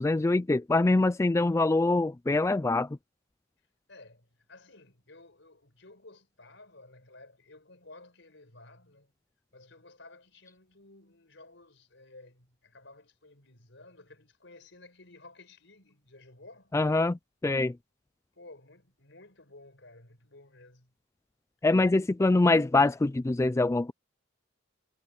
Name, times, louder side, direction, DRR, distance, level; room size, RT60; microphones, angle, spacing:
voice 1, 0.0-2.9 16.7-17.7 21.6-23.9, left 2 dB, 15° left, 0.3 m, -24 dB
voice 2, 3.9-9.1 9.5-16.7 18.3-20.9, left 2 dB, 70° left, 6.2 m, -54 dB
head